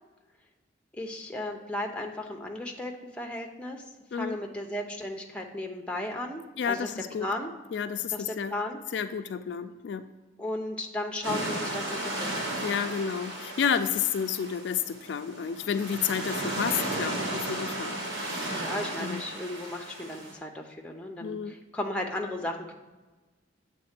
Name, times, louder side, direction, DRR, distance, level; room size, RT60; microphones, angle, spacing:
voice 1, 0.9-3.8 4.1-6.9 7.2-7.5 8.1-8.8 10.4-12.3 18.5-22.7, left 1 dB, 5° left, 2 dB, 0.6 m, -35 dB
voice 2, 6.6-7.3 7.7-8.5 8.9-10.1 12.6-18.4 19.0-19.2 21.2-21.5, left 7 dB, 65° left, 9 dB, 0.3 m, -31 dB
sound 1, 11.2-20.3, right 1 dB, 90° right, 1.8 m, -34 dB
7.6 x 3.6 x 5.8 m, 1.2 s
head